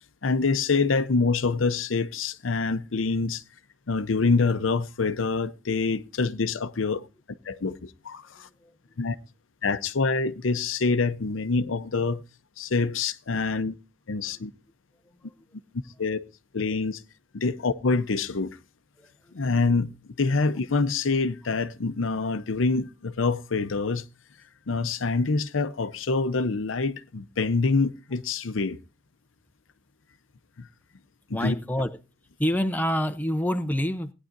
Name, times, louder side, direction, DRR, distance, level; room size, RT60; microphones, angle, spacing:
voice 1, 0.2-3.4 3.9-7.1 7.4-8.5 9.0-9.2 9.6-12.2 12.6-13.7 14.1-14.5 16.0-16.2 16.5-17.0 17.3-18.6 19.3-19.9 20.2-24.1 24.7-28.8 30.6-30.7 31.4-31.6, left 4 dB, 85° left, 0.7 m, -26 dB
voice 2, 19.0-19.5 31.3-32.0 32.4-34.1, equal, 10° left, 0.7 m, -27 dB
17.5 x 9.8 x 2.6 m
head